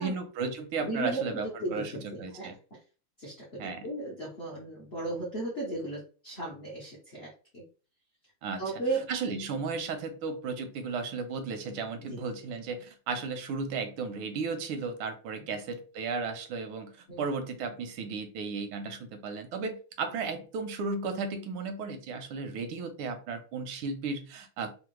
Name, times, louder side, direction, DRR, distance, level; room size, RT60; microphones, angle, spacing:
voice 1, 0.0-2.5 3.6-3.9 8.4-8.6 9.1-24.7, right 4 dB, 80° right, 7 dB, 1.4 m, -35 dB
voice 2, 0.8-1.8 2.1-2.6 3.2-7.6 8.6-9.1 12.1-12.2 17.1-17.2, right 2 dB, 60° left, -4 dB, 0.6 m, -35 dB
3.6 x 2.0 x 3.0 m, 0.37 s
omnidirectional pair, 2.3 m